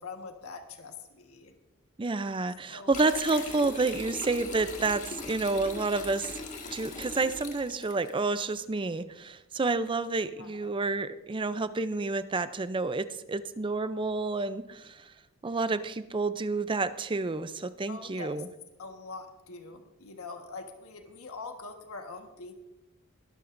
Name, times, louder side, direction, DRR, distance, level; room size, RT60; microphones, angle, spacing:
voice 1, 0.0-1.5 2.7-2.9 10.4-10.7 17.9-18.4 18.8-22.5, left 4 dB, 90° left, 5 dB, 1.5 m, -43 dB
voice 2, 2.0-6.4 6.7-15.1 15.4-18.5, right 3 dB, 25° right, 13 dB, 0.5 m, -29 dB
sound 1, 2.9-8.1, left 3 dB, 35° left, 1.9 m, -40 dB
21.5 x 12.5 x 2.6 m, 0.96 s
head